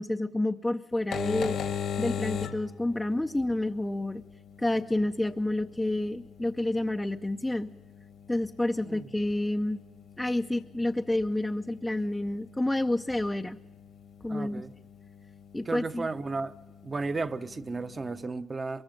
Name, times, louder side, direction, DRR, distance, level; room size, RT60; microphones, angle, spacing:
voice 1, 0.0-1.6 2.0-4.2 4.6-7.7 8.3-9.8 10.2-13.6 14.2-14.6 15.5-16.1, left 1 dB, 10° left, 0.6 m, -29 dB
sound 1, 0.9-18.2, left 7 dB, 70° left, 1.6 m, -41 dB
voice 2, 14.3-14.7 15.6-16.5 16.8-18.8, right 3 dB, 30° right, 1.0 m, -34 dB
23.0 x 22.0 x 5.3 m
cardioid pair, 90°, 0 cm